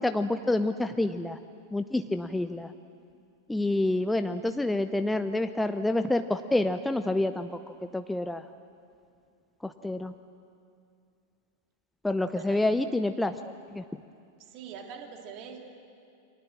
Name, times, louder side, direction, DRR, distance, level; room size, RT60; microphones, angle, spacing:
voice 1, 0.0-1.4 1.7-2.7 3.5-8.5 9.6-10.1 12.0-13.4 13.7-13.8, left 2 dB, 5° left, 9 dB, 0.7 m, -28 dB
voice 2, 12.3-12.7 14.4-15.7, right 6 dB, 40° right, 3 dB, 3.2 m, -43 dB
29.5 x 24.0 x 7.5 m, 2.5 s
figure-of-eight pair, 90°, 0 cm